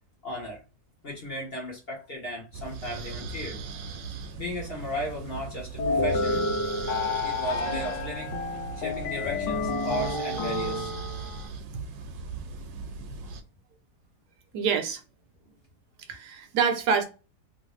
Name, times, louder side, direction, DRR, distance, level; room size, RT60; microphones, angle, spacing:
voice 1, 0.2-0.6 1.0-3.6 4.4-6.4 7.2-8.3 8.8-10.9, equal, 40° left, 1.1 m, -35 dB
sound 1, 2.5-13.4, right 5 dB, 90° right, 1.3 m, -38 dB
sound 2, 5.8-11.5, left 3 dB, 80° left, 1.3 m, -29 dB
voice 2, 14.5-15.0 16.1-17.0, right 6 dB, 75° right, 1.1 m, -26 dB
3.1 x 2.6 x 3.0 m
omnidirectional pair, 1.9 m